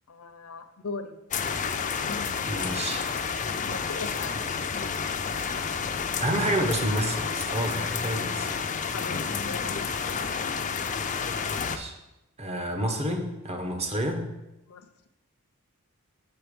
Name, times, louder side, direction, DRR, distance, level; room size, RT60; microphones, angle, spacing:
voice 1, 0.1-1.2 1.9-2.6 3.6-4.3 8.9-9.2 9.4-10.0 14.7-14.9, left 4 dB, 70° left, 8 dB, 0.7 m, -39 dB
sound 1, 1.3-11.8, left 6 dB, 35° left, 0.5 m, -30 dB
voice 2, 2.5-3.0 6.2-8.7 11.5-11.9 12.4-14.3, right 1 dB, 30° right, 4 dB, 1.1 m, -29 dB
7.3 x 4.5 x 6.9 m, 0.94 s
head